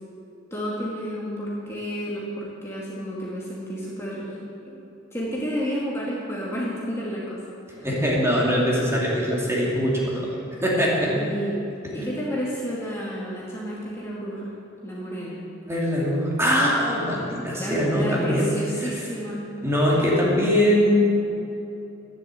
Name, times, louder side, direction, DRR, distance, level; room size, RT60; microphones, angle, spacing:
voice 1, 0.5-4.4 4.7-4.8 5.1-7.4 7.7-7.9 11.1-11.6 11.9-14.5 14.8-15.4 17.5-19.4, equal, 15° left, -6 dB, 2.3 m, -31 dB
voice 2, 7.8-10.2 10.6-11.1 11.8-11.9 15.7-18.5 19.6-21.2, equal, 15° right, -5 dB, 2.9 m, -22 dB
12.5 x 10.5 x 7.8 m, 2.8 s
head